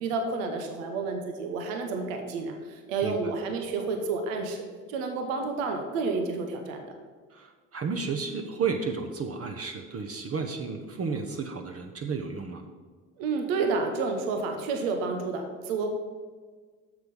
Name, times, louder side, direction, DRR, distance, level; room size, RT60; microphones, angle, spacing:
voice 1, 0.0-4.6 4.9-6.9 13.2-15.9, right 4 dB, 75° right, 4 dB, 1.2 m, -30 dB
voice 2, 7.3-12.7, right 5 dB, 35° right, 4 dB, 1.0 m, -32 dB
8.0 x 7.0 x 5.4 m, 1.5 s
hypercardioid pair, 50°, 40 cm